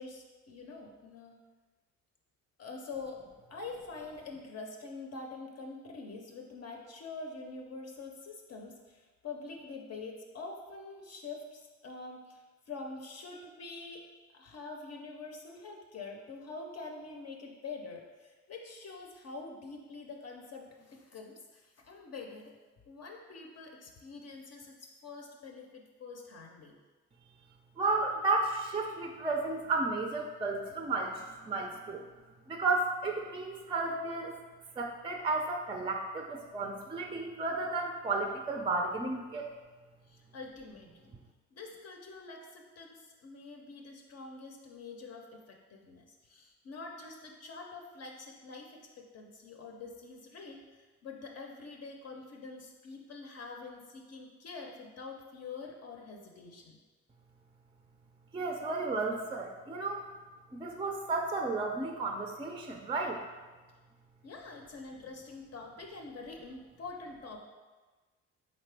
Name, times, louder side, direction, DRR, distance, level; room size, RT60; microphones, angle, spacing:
voice 1, 0.0-1.4 2.6-3.2 3.5-14.0 14.3-22.5 22.9-26.7 40.1-41.1 41.5-56.8 64.2-67.4, left 3 dB, 55° left, 1 dB, 0.6 m, -45 dB
voice 2, 27.8-32.0 32.5-34.3 34.8-39.5 58.3-60.1 60.5-63.2, right 3 dB, 15° right, 3 dB, 0.4 m, -33 dB
4.1 x 3.7 x 3.3 m, 1.3 s
cardioid pair, 90°, 30 cm